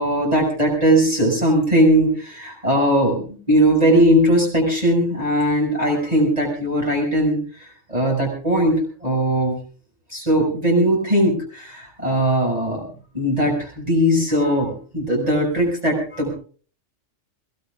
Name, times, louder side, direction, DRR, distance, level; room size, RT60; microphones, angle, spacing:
voice 1, 0.0-9.6 10.1-12.9 13.1-16.3, equal, 30° right, -2 dB, 6.3 m, -19 dB
23.0 x 21.5 x 2.4 m, 0.41 s
omnidirectional pair, 1.3 m